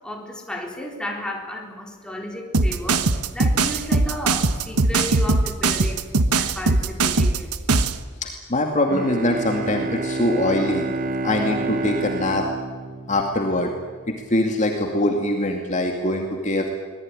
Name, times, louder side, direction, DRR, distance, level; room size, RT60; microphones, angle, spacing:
voice 1, 0.0-6.1 6.3-7.6, left 1 dB, 5° left, 0 dB, 4.0 m, -33 dB
sound 1, 2.5-8.0, right 3 dB, 90° right, 1.2 m, -20 dB
voice 2, 8.2-10.9 11.2-12.4 13.1-13.7 14.1-16.7, left 1 dB, 35° left, 2 dB, 2.4 m, -23 dB
Bowed string instrument, 8.9-13.8, right 2 dB, 40° right, 1.1 m, -28 dB
24.5 x 19.0 x 10.0 m, 1.5 s
head